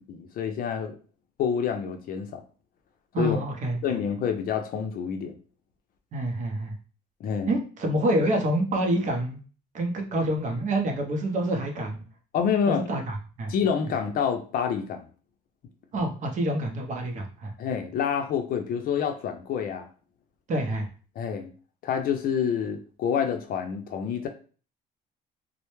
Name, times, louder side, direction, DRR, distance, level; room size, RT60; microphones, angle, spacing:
voice 1, 0.1-1.0 1.4-2.4 3.2-3.4 3.8-5.4 7.2-7.6 12.3-12.9 13.5-15.1 17.6-19.9 21.2-21.5 21.8-24.3, left 7 dB, 60° left, 6 dB, 0.5 m, -27 dB
voice 2, 3.1-3.8 6.1-6.7 7.5-9.4 9.7-12.0 12.7-13.5 15.9-17.5 20.5-20.9, right 1 dB, 45° right, 3 dB, 0.6 m, -27 dB
2.1 x 2.0 x 3.0 m, 0.37 s
cardioid pair, 110°, 17 cm